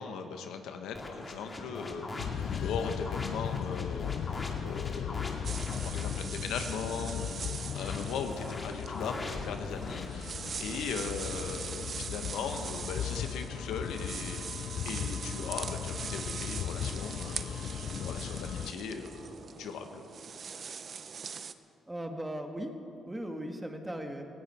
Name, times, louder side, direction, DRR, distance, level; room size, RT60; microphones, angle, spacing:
voice 1, 0.0-10.3 10.6-20.0, left 6 dB, 85° left, 6 dB, 1.2 m, -39 dB
sound 1, 0.9-6.2 7.6-10.1, left 2 dB, 30° left, 2.2 m, -41 dB
sound 2, 2.2-18.7, left 9 dB, 65° left, 0.4 m, -37 dB
sound 3, 5.4-21.5, right 6 dB, 45° right, 0.7 m, -42 dB
voice 2, 21.9-22.7 23.1-24.3, right 1 dB, 10° right, 4 dB, 1.6 m, -38 dB
18.0 x 16.0 x 4.4 m, 2.7 s
cardioid pair, 90°, 0 cm